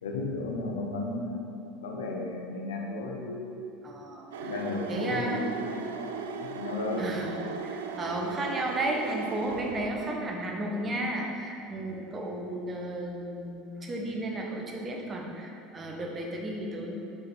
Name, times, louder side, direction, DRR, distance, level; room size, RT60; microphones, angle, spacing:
voice 1, 0.0-1.5 1.8-3.7 4.4-5.5 5.7-7.0, left 2 dB, 75° left, 0 dB, 0.9 m, -34 dB
voice 2, 3.8-5.6 7.0-16.9, right 1 dB, 30° right, 0 dB, 1.1 m, -34 dB
sound 1, 4.3-10.2, right 4 dB, 70° right, 0.4 m, -37 dB
5.4 x 5.2 x 4.6 m, 2.7 s
figure-of-eight pair, 70°, 0 cm